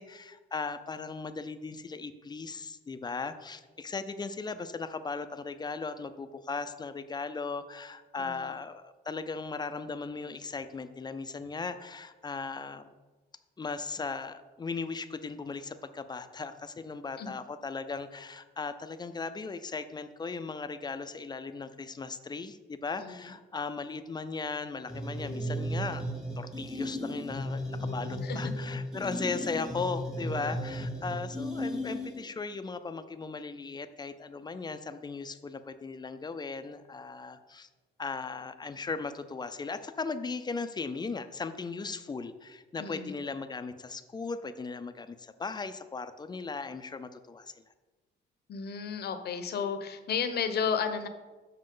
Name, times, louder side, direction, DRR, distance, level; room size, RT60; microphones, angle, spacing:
voice 1, 0.0-12.9 13.6-26.0 26.4-37.7 38.0-47.6, left 4 dB, 20° left, 10 dB, 0.4 m, -37 dB
voice 2, 8.2-8.5 17.2-17.3 23.0-23.1 28.2-28.5 42.8-43.1 48.5-51.1, left 6 dB, 60° left, 9 dB, 0.8 m, -33 dB
sound 1, 24.9-32.4, equal, 5° right, 1.0 m, -35 dB
7.6 x 5.9 x 3.8 m, 1.2 s
cardioid pair, 120°, 19 cm